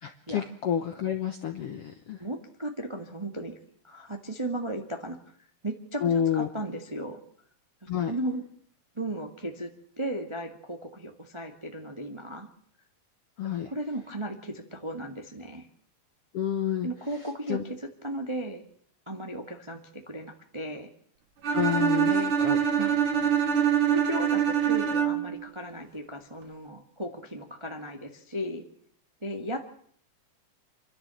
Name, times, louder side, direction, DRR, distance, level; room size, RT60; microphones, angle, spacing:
voice 1, 0.0-2.2 6.0-6.5 7.9-8.1 13.4-13.7 16.3-16.9 17.2-17.7 21.5-22.6, left 9 dB, 70° left, 7 dB, 1.4 m, -29 dB
voice 2, 2.2-3.5 3.8-5.2 5.6-7.2 7.8-8.4 8.9-9.7 10.0-12.5 13.4-15.7 16.8-18.6 19.1-20.9 22.1-22.3 22.8-22.9 23.9-28.6 29.2-29.7, right 1 dB, 25° right, 4 dB, 0.6 m, -36 dB
Bowed string instrument, 21.4-25.4, right 8 dB, 45° right, 2.2 m, -24 dB
28.5 x 12.0 x 7.7 m, 0.64 s
omnidirectional pair, 4.1 m